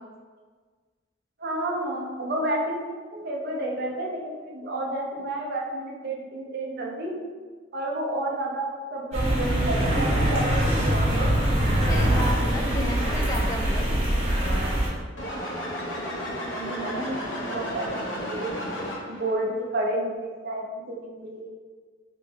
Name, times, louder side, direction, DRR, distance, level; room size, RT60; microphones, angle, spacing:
voice 1, 1.4-2.8 3.1-7.2 7.7-11.3 16.6-18.7 19.1-21.5, right 1 dB, 55° right, -1 dB, 0.6 m, -30 dB
sound 1, 9.1-14.9, right 1 dB, 35° right, 0.9 m, -23 dB
voice 2, 11.8-14.1, equal, 20° left, 0 dB, 0.3 m, -32 dB
sound 2, 15.2-19.3, equal, 85° left, 0.6 m, -33 dB
3.4 x 2.9 x 2.7 m, 1.5 s
head